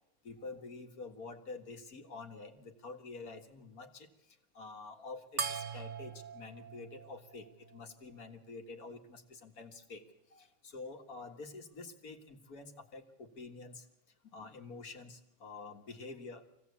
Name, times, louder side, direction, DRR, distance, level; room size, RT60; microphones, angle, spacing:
voice 1, 0.2-10.0 10.3-13.9 14.2-16.4, left 3 dB, 85° left, 4 dB, 2.3 m, -48 dB
sound 1, 5.4-8.2, right 6 dB, 40° right, 1.0 m, -42 dB
24.5 x 17.0 x 8.3 m, 0.94 s
omnidirectional pair, 1.5 m